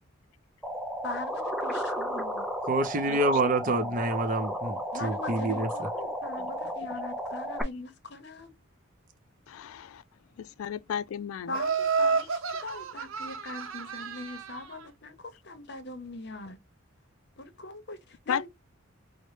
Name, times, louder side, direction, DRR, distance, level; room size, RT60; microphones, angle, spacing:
sound 1, 0.6-7.6, equal, ahead, 0.4 m, -34 dB
voice 1, 1.0-2.5 4.9-8.5 11.5-16.6 17.4-18.5, left 2 dB, 55° left, 0.8 m, -41 dB
voice 2, 2.7-5.7, right 2 dB, 40° right, 0.6 m, -27 dB
voice 3, 9.5-10.0 10.4-11.5 18.3-18.5, left 8 dB, 85° left, 0.3 m, -34 dB
Laughter, 11.5-14.8, right 5 dB, 80° right, 0.6 m, -30 dB
5.3 x 2.1 x 3.1 m
head